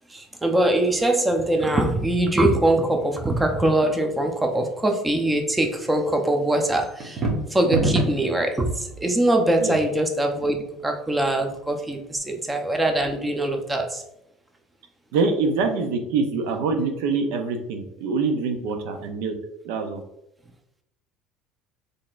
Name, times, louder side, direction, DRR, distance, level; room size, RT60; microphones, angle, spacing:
voice 1, 0.1-14.0, right 1 dB, 10° right, 4 dB, 0.7 m, -22 dB
sound 1, 7.0-8.3, right 2 dB, 40° right, 1.1 m, -23 dB
voice 2, 15.1-19.3 19.6-20.0, right 4 dB, 80° right, 5 dB, 0.6 m, -25 dB
4.0 x 3.3 x 2.5 m, 0.82 s
supercardioid pair, 100°, 0 cm